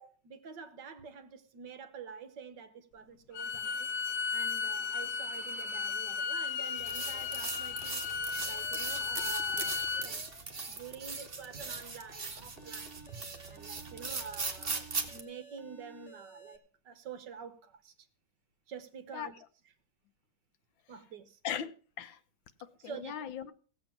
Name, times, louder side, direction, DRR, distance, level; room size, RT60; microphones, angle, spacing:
voice 1, 0.0-3.9 4.3-8.0 8.4-10.2 10.7-16.6 16.8-18.1 18.7-19.3 20.9-21.4 22.8-23.2, right 6 dB, 65° right, 1.7 m, -48 dB
Bowed string instrument, 3.3-10.1, left 5 dB, 55° left, 1.1 m, -35 dB
Alarm, 6.6-16.6, right 2 dB, 40° left, 1.7 m, -56 dB
sound 1, 6.8-15.2, right 4 dB, 30° right, 1.4 m, -39 dB
voice 2, 21.4-22.2 22.6-23.5, left 9 dB, 75° left, 1.5 m, -39 dB
16.5 x 7.9 x 5.9 m
omnidirectional pair, 2.1 m